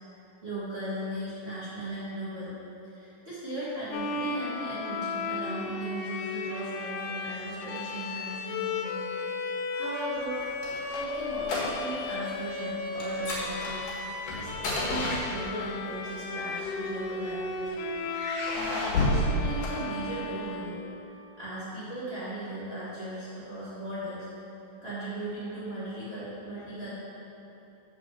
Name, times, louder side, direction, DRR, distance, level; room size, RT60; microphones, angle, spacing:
voice 1, 0.4-2.5 2.8-9.0 9.7-10.4 10.9-13.8 14.4-17.7 18.5-20.8 21.4-24.3 24.8-26.9, right 1 dB, 85° right, -12 dB, 0.5 m, -37 dB
Bowed string instrument, 3.9-21.3, left 3 dB, 85° left, 1.9 m, -35 dB
sound 1, 10.2-12.1 12.4-12.6 13.0-15.8 16.7-17.5 18.1-20.4, left 1 dB, 60° left, 3.0 m, -31 dB
8.0 x 4.9 x 7.0 m, 2.9 s
omnidirectional pair, 4.4 m